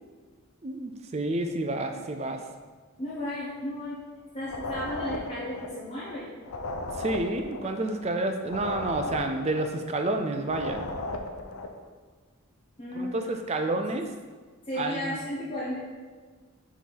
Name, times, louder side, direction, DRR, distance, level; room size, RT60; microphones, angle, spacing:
voice 1, 0.6-2.4 7.0-10.8 12.9-14.1 14.8-15.2, right 2 dB, 30° right, 5 dB, 0.4 m, -29 dB
voice 2, 3.0-4.0 4.3-6.3 9.2-9.3 12.8-13.3 14.7-15.8, left 1 dB, 25° left, -9 dB, 1.0 m, -34 dB
sound 1, 4.4-11.8, left 2 dB, 80° left, 0.6 m, -36 dB
4.7 x 4.3 x 5.3 m, 1.5 s
head